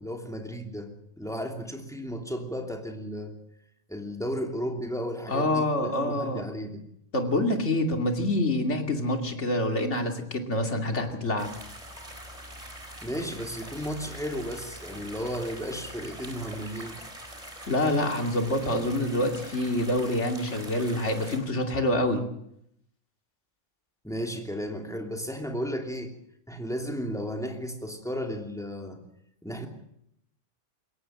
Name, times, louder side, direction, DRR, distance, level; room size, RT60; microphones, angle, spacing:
voice 1, 0.0-3.4 3.9-6.8 13.0-17.0 24.0-26.1 26.5-29.0 29.4-29.7, equal, ahead, 3 dB, 2.9 m, -34 dB
voice 2, 5.3-6.4 7.1-11.5 17.7-22.2, left 1 dB, 65° left, 4 dB, 2.9 m, -26 dB
sound 1, 11.4-21.4, right 1 dB, 30° right, 4.0 m, -43 dB
21.5 x 18.0 x 7.6 m, 0.75 s
omnidirectional pair, 1.3 m